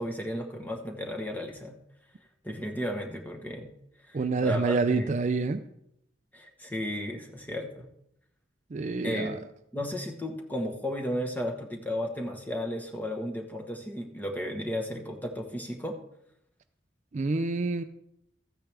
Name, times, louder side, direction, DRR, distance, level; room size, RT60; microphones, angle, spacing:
voice 1, 0.0-1.8 2.4-3.7 4.1-5.1 6.3-7.9 9.0-9.3 9.7-16.0, equal, 10° left, 2 dB, 1.2 m, -34 dB
voice 2, 4.1-5.6 8.7-9.4 17.1-17.8, right 3 dB, 40° right, 9 dB, 0.4 m, -27 dB
14.0 x 9.2 x 3.4 m, 0.77 s
head